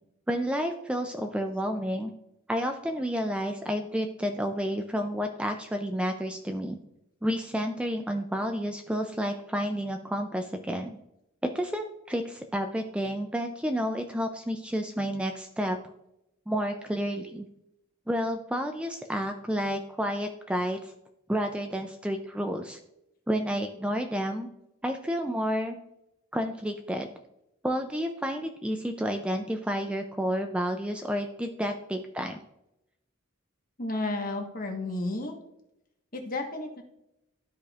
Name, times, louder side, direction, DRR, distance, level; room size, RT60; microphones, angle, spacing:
voice 1, 0.3-2.1 2.5-6.8 7.2-11.0 11.4-15.8 16.5-17.5 18.1-20.9 21.3-22.8 23.3-24.5 24.8-25.8 26.3-27.1 27.6-32.4, equal, 5° right, 5 dB, 0.4 m, -30 dB
voice 2, 33.8-35.3 36.1-36.8, left 2 dB, 40° left, 3 dB, 1.2 m, -32 dB
12.5 x 5.1 x 2.4 m, 0.86 s
head